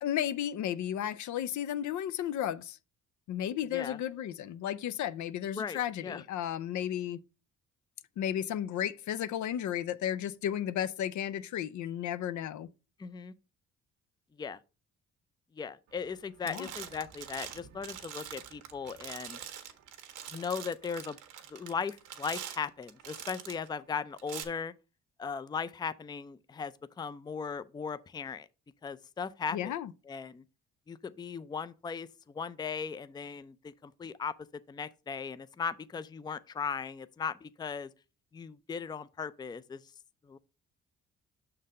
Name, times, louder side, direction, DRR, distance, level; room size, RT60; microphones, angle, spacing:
voice 1, 0.0-2.8 3.3-7.2 8.2-12.7 16.4-16.7 29.5-29.9, left 10 dB, 75° left, 0.6 m, -33 dB
voice 2, 5.6-6.2 13.0-13.3 14.4-14.6 15.5-19.4 20.3-21.2 21.5-24.7 25.2-28.5 28.8-29.8 30.1-30.4 30.9-34.3 34.7-37.9 38.3-39.8 40.2-40.4, left 6 dB, 15° left, 0.4 m, -38 dB
sound 1, 16.0-16.2 16.5-23.7 24.2-24.4, right 10 dB, 85° right, 1.1 m, -44 dB
6.3 x 4.0 x 5.4 m
cardioid pair, 90°, 30 cm